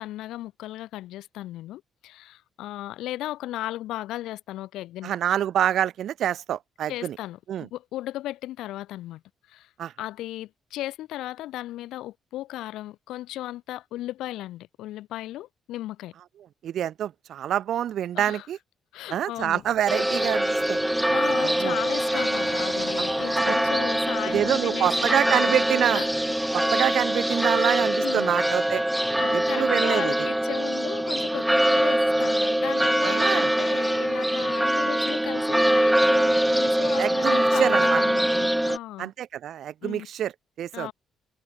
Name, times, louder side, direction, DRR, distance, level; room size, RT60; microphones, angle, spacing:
voice 1, 0.0-5.1 6.9-9.2 9.5-9.7 10.0-16.1 18.1-18.5 18.9-19.6 21.1-25.6 25.9-26.2 27.3-27.5 28.0-28.3 29.2-39.1 39.8-40.1 40.7-40.9, left 15 dB, 90° left, 1.2 m, -36 dB
voice 2, 5.0-7.2 7.5-7.7 9.8-9.9 16.6-18.6 19.1-20.8 21.4-21.8 23.4-23.5 24.3-26.0 26.5-28.8 29.3-30.3 33.0-33.5 37.0-38.0 39.0-40.3 40.6-40.9, right 10 dB, 70° right, 0.9 m, -26 dB
Door, 19.4-27.0, left 9 dB, 65° left, 4.7 m, -47 dB
sound 1, 19.9-38.8, right 1 dB, 5° right, 0.7 m, -23 dB
cardioid pair, 90°, 0 cm